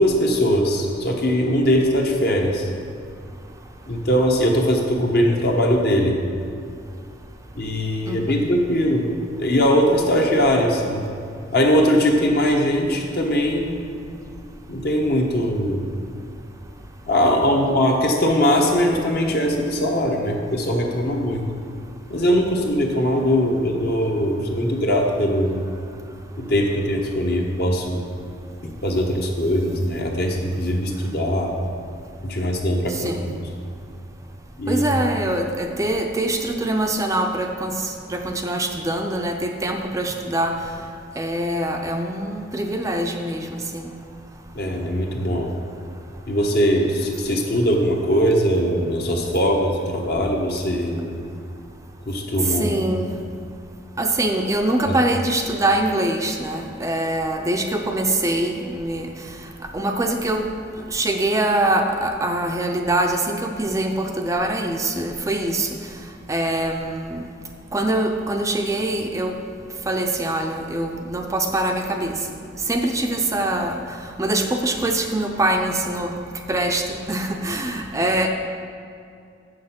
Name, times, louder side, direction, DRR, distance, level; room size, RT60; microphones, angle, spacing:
voice 1, 0.0-2.7 3.9-6.2 7.6-9.1 9.4-11.1 11.5-13.8 14.7-15.8 17.1-21.5 22.1-25.6 26.4-28.0 28.6-31.5 32.2-33.4 34.6-34.8 44.5-45.5 46.3-51.1 52.1-52.8 54.9-55.0, equal, 55° left, 1 dB, 1.2 m, -21 dB
voice 2, 8.1-8.5 32.9-33.2 34.7-40.6 41.2-43.9 52.6-53.2 54.0-59.1 59.7-60.5 60.9-65.7 66.3-67.2 67.7-69.3 69.9-72.1 72.7-73.8 74.2-76.1 76.5-78.3, right 1 dB, 15° right, 3 dB, 0.5 m, -23 dB
7.8 x 6.5 x 5.8 m, 2.4 s
head